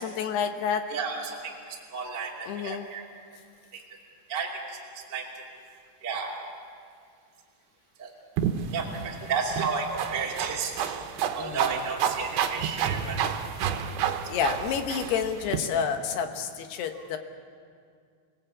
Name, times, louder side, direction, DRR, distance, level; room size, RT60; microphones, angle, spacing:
voice 1, 0.0-0.8 2.5-2.9 11.4-11.7 14.3-17.2, left 7 dB, 70° left, 6 dB, 2.9 m, -29 dB
voice 2, 0.9-3.0 3.7-3.8 4.3-5.4 6.0-6.3 8.0-8.1 8.7-11.0 11.3-13.2, right 5 dB, 30° right, -3 dB, 2.5 m, -32 dB
sound 1, 8.4-15.6, right 8 dB, 80° right, 3.3 m, -30 dB
27.5 x 18.5 x 8.4 m, 2.2 s
omnidirectional pair, 5.5 m